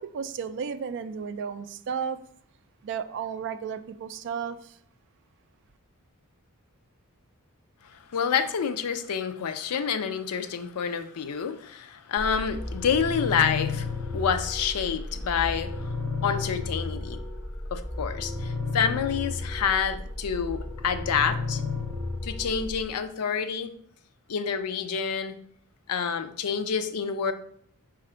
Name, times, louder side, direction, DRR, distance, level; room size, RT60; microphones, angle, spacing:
voice 1, 0.0-2.2 2.8-4.7, right 6 dB, 55° right, 11 dB, 0.3 m, -33 dB
voice 2, 7.9-15.9 16.2-17.2 17.7-21.6 22.2-23.7 24.3-25.4 25.9-27.3, left 7 dB, 90° left, 10 dB, 0.4 m, -28 dB
sound 1, 12.2-22.8, left 3 dB, 5° left, 0.9 m, -33 dB
4.9 x 2.5 x 4.3 m, 0.62 s
head